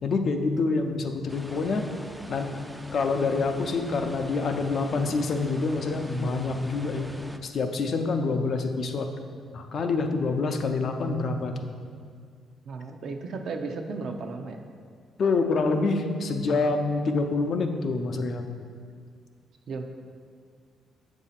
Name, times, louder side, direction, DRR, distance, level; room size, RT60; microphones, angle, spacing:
voice 1, 0.0-1.9 2.3-2.5 2.9-7.1 7.4-9.1 9.5-11.7 15.2-18.5, left 3 dB, 55° left, 5 dB, 0.5 m, -26 dB
sound 1, 1.3-7.4, right 1 dB, 5° right, 0.4 m, -42 dB
voice 2, 12.6-14.6 19.7-19.8, right 4 dB, 65° right, 4 dB, 0.5 m, -34 dB
7.2 x 2.7 x 5.7 m, 2.1 s
cardioid pair, 90°, 0 cm